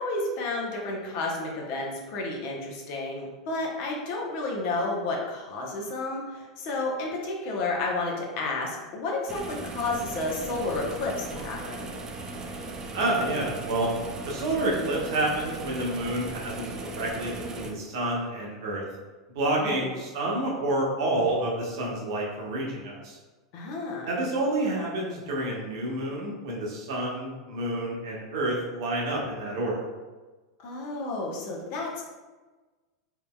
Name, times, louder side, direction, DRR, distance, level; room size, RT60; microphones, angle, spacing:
voice 1, 0.0-11.9 19.6-19.8 23.5-24.1 30.6-32.0, left 2 dB, 50° left, -1 dB, 0.8 m, -31 dB
sound 1, 9.3-17.7, right 2 dB, 25° right, 0.4 m, -38 dB
voice 2, 12.9-13.9 14.3-18.8 19.3-23.2 24.0-29.9, right 1 dB, 60° right, -3 dB, 0.9 m, -29 dB
3.6 x 2.9 x 2.3 m, 1.3 s
figure-of-eight pair, 90°, 3 cm